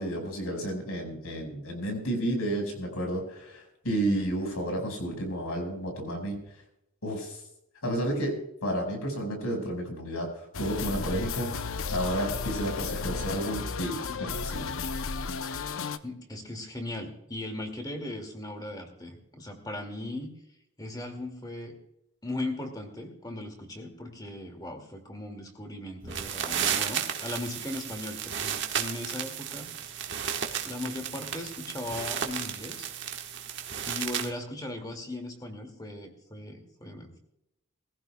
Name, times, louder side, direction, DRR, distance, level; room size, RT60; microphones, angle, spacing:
voice 1, 0.0-6.4 7.0-7.4 7.8-8.3 8.6-11.5 11.9-14.7, right 1 dB, 90° left, 3 dB, 5.2 m, -31 dB
sound 1, 10.5-16.0, left 4 dB, 70° left, 0.7 m, -33 dB
voice 2, 16.0-20.3 20.8-21.7 22.2-29.7 30.6-32.9 33.8-37.2, left 1 dB, 20° left, 4 dB, 2.2 m, -38 dB
sound 2, 26.0-34.3, right 8 dB, 55° right, 1.4 m, -33 dB
21.0 x 15.0 x 2.3 m, 0.82 s
head